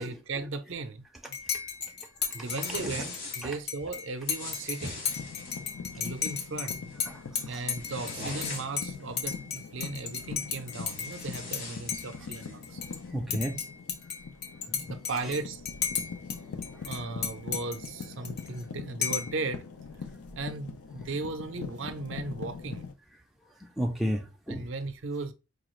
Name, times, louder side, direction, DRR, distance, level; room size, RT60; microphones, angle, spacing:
voice 1, 0.0-1.4 2.3-5.0 6.0-6.8 7.5-12.8 14.9-15.6 16.8-19.7 20.4-22.8 24.5-25.3, right 3 dB, 55° right, 0.5 m, -36 dB
Dishes pots and pans / Cutlery silverware / Chink clink, 1.3-11.6 11.9-13.0 13.3-16.4 16.6-18.6 19.0-19.4, left 7 dB, 45° left, 0.6 m, -35 dB
sound 1, 2.4-3.6 4.2-5.6 6.1-6.5 6.9-7.1 7.6-8.9 10.1-10.2 10.6-12.5, left 2 dB, 60° left, 1.4 m, -41 dB
sound 2, 5.0-22.9, left 5 dB, 85° left, 0.5 m, -42 dB
voice 2, 13.1-13.6 14.7-14.9 23.8-24.7, equal, ahead, 0.4 m, -32 dB
4.8 x 2.3 x 3.0 m
head